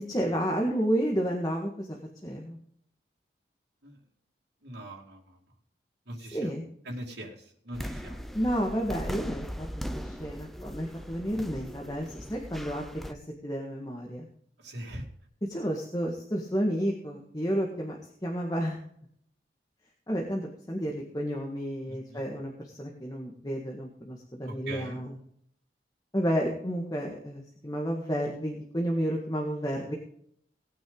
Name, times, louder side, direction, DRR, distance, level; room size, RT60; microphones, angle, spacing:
voice 1, 0.0-2.6 6.3-6.7 8.3-13.2 13.4-14.3 15.5-18.8 20.1-25.1 26.1-30.0, equal, 20° left, 0 dB, 1.8 m, -31 dB
voice 2, 4.6-5.4 6.1-6.5 6.8-8.3 14.6-15.1 21.9-22.3 24.4-25.0, right 1 dB, 90° right, -4 dB, 2.6 m, -41 dB
sound 1, 7.7-13.1, equal, ahead, 0.7 m, -39 dB
18.5 x 9.1 x 3.9 m, 0.67 s
head